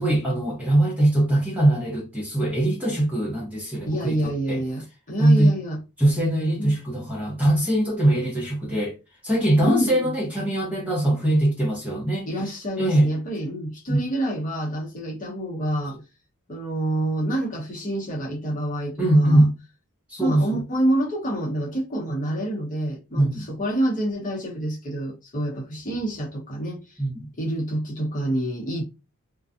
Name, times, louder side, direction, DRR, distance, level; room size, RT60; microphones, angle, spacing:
voice 1, 0.0-4.6 5.2-5.5 6.0-9.0 9.2-12.3 12.8-13.1 13.9-14.0 19.0-19.6 20.1-20.6 23.2-23.5 27.0-27.3, right 1 dB, 5° right, 0.8 m, -21 dB
voice 2, 3.8-5.8 6.6-6.7 9.6-10.1 12.2-16.0 16.5-19.5 20.2-27.0 27.4-28.8, right 1 dB, 35° left, 0.8 m, -27 dB
2.5 x 2.2 x 2.4 m
head